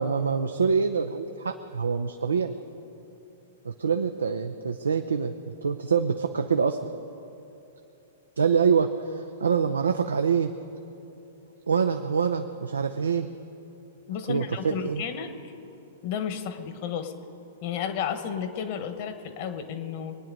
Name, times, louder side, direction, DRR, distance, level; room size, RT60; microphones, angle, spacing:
voice 1, 0.0-2.5 3.6-5.3 5.6-6.8 8.4-10.5 11.7-13.3 14.3-15.0, right 6 dB, 80° right, 6 dB, 0.6 m, -25 dB
voice 2, 14.1-15.3 16.0-17.1 17.6-20.2, left 8 dB, 50° left, 9 dB, 1.3 m, -32 dB
23.5 x 9.6 x 5.2 m, 2.9 s
figure-of-eight pair, 105°, 0 cm